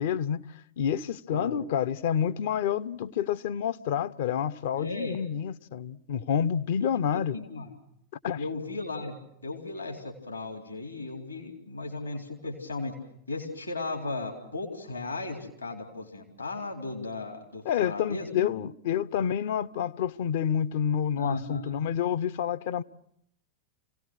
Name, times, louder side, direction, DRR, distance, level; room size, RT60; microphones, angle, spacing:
voice 1, 0.0-7.4 8.2-8.5 17.6-22.8, left 8 dB, 55° left, 0.7 m, -28 dB
voice 2, 1.3-1.7 4.8-5.2 6.8-7.7 8.4-9.1 9.4-12.9 13.3-18.5 21.1-21.7, left 3 dB, 80° left, 3.7 m, -36 dB
26.5 x 18.0 x 6.3 m
figure-of-eight pair, 90°, 0 cm